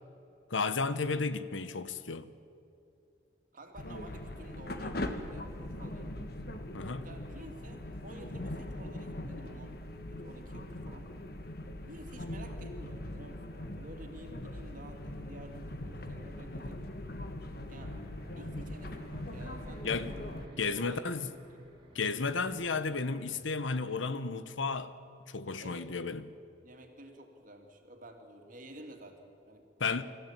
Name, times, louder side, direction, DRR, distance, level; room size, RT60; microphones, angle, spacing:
voice 1, 0.5-2.3 6.7-7.1 19.8-20.1 20.6-21.3 21.9-24.9 25.3-26.2 29.8-30.0, left 4 dB, 85° left, 1.0 m, -33 dB
voice 2, 3.5-6.2 7.0-11.1 11.8-16.8 17.6-18.0 18.3-20.3 20.7-21.1 21.5-21.7 25.6-25.9 26.6-29.6, right 1 dB, 45° right, 2.5 m, -51 dB
sound 1, 3.8-20.5, left 1 dB, 55° left, 1.5 m, -41 dB
sound 2, 17.8-23.3, right 1 dB, 25° right, 2.7 m, -54 dB
25.5 x 14.0 x 8.9 m
head